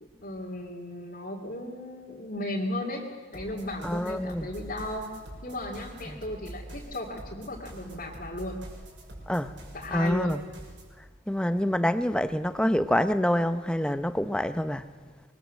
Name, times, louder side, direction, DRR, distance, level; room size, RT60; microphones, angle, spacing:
voice 1, 0.2-3.0 3.3-5.1 5.4-8.6 9.7-10.3, left 1 dB, 50° left, -3 dB, 2.7 m, -35 dB
sound 1, 3.3-11.0, right 1 dB, 75° right, 6.2 m, -45 dB
voice 2, 3.8-4.5 6.1-6.2 9.3-9.5 9.9-10.4 11.3-14.9, equal, 5° left, 11 dB, 0.8 m, -26 dB
25.0 x 22.0 x 7.6 m, 1.5 s
head